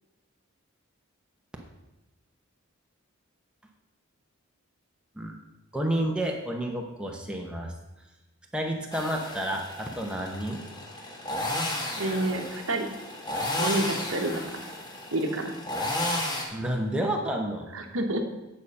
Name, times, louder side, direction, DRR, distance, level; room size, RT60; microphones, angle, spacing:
voice 1, 5.7-7.7 8.5-10.6 16.5-17.7, right 1 dB, 5° right, 0 dB, 0.9 m, -30 dB
sound 1, 8.9-16.5, left 1 dB, 20° left, 1.3 m, -33 dB
voice 2, 12.0-12.9 13.6-14.4 15.1-15.5 17.7-18.2, right 1 dB, 70° right, 5 dB, 1.1 m, -28 dB
9.3 x 6.6 x 5.4 m, 1.0 s
head